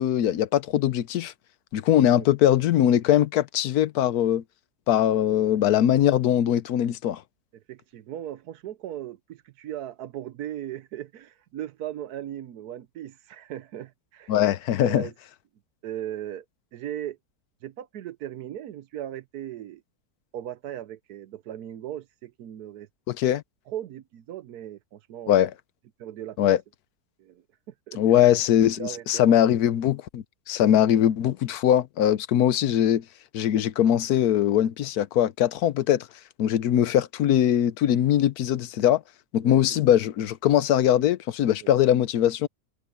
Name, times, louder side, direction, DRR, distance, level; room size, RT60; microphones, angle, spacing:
voice 1, 0.0-1.3 1.7-4.4 4.9-7.2 14.3-15.1 23.1-23.4 25.3-25.5 26.4-26.6 27.9-33.0 33.3-36.1 36.4-39.0 39.3-42.5, left 11 dB, 70° left, 1.2 m, -21 dB
voice 2, 7.5-14.4 14.8-15.1 15.8-16.4 16.7-17.2 17.6-19.8 20.3-22.9 23.7-25.5 26.0-26.5 27.2-27.4 27.9-28.3 28.8-29.4 39.4-39.6 41.6-41.7, right 11 dB, 75° right, 1.2 m, -38 dB
omnidirectional pair, 1.7 m